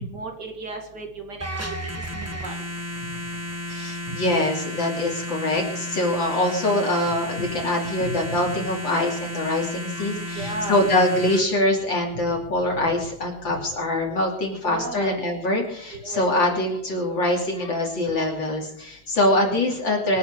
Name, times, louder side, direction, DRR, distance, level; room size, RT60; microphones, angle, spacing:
voice 1, 0.0-2.6 10.3-10.8 14.6-15.2 16.0-16.3, right 2 dB, 55° right, 3 dB, 2.8 m, -35 dB
sound 1, 1.4-11.4, left 1 dB, 10° right, 1.4 m, -33 dB
voice 2, 3.7-20.2, left 1 dB, 65° left, -1 dB, 3.5 m, -24 dB
26.0 x 8.8 x 4.8 m, 0.68 s
omnidirectional pair, 2.3 m